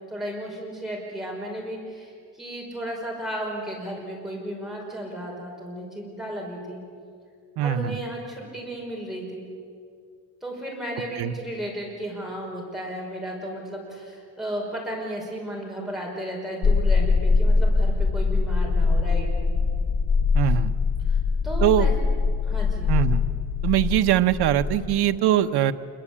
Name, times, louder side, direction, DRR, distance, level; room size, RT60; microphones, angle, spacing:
voice 1, 0.1-6.8 7.6-9.4 10.4-19.3 21.1-21.2 21.4-21.9 22.4-22.9, right 1 dB, ahead, -3 dB, 5.4 m, -34 dB
voice 2, 7.6-8.0 11.2-11.3 20.3-20.7 21.6-21.9 22.9-23.2 23.6-25.7, right 11 dB, 70° right, 9 dB, 1.0 m, -22 dB
sound 1, 16.6-25.2, left 4 dB, 35° left, 1.0 m, -22 dB
26.5 x 23.0 x 8.6 m, 2.2 s
cardioid pair, 175°, 40 cm